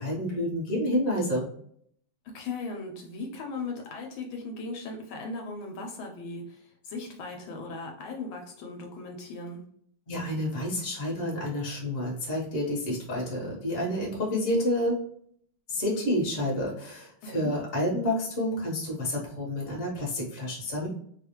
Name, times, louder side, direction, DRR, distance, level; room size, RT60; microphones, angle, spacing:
voice 1, 0.0-1.5 10.1-15.0 15.7-20.9, left 1 dB, 40° left, -3 dB, 1.0 m, -29 dB
voice 2, 2.3-9.6 17.2-17.5, left 3 dB, 75° left, 2 dB, 1.4 m, -38 dB
3.2 x 2.4 x 2.9 m, 0.65 s
omnidirectional pair, 2.3 m